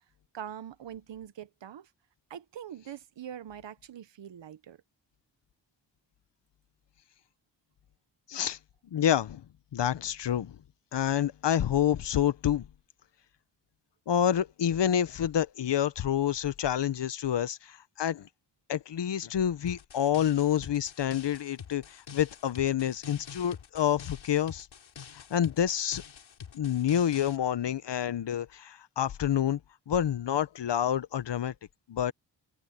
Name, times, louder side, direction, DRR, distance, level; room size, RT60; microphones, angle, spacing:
voice 1, 0.3-1.9 2.3-4.8, right 9 dB, 80° right, 1.2 m, -43 dB
voice 2, 8.9-9.4 9.7-10.6 10.9-12.7 14.1-18.3 18.7-24.7 25.1-26.0 26.5-29.6 29.9-31.5 31.9-32.1, left 10 dB, 70° left, 1.0 m, -28 dB
sound 1, 19.7-27.4, left 7 dB, 85° left, 6.1 m, -47 dB
open air
cardioid pair, 60°, 44 cm